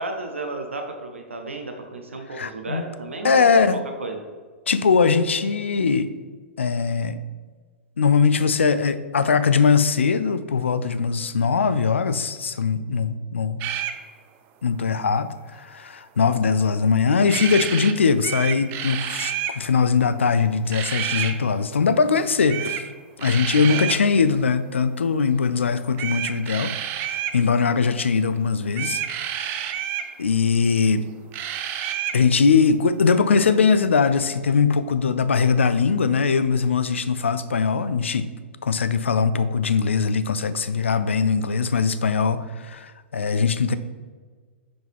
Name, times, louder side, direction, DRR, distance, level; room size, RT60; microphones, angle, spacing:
voice 1, 0.0-3.5 4.0-4.2 23.4-24.0, right 2 dB, 75° right, 4 dB, 0.8 m, -33 dB
voice 2, 2.4-2.8 3.2-3.8 4.7-6.1 6.6-7.2 8.0-13.6 14.6-22.8 23.2-29.0 29.3-29.6 30.2-31.0 32.1-38.3 38.6-43.7, left 5 dB, 70° left, 13 dB, 0.4 m, -21 dB
sound 1, 13.6-14.0 17.3-17.9 18.2-19.6 20.7-21.3 22.5-22.9 23.2-24.0 25.9-27.4 28.7-30.1 31.3-32.2, right 10 dB, 30° right, 0.4 m, -29 dB
6.0 x 5.1 x 3.5 m, 1.5 s
figure-of-eight pair, 105°, 7 cm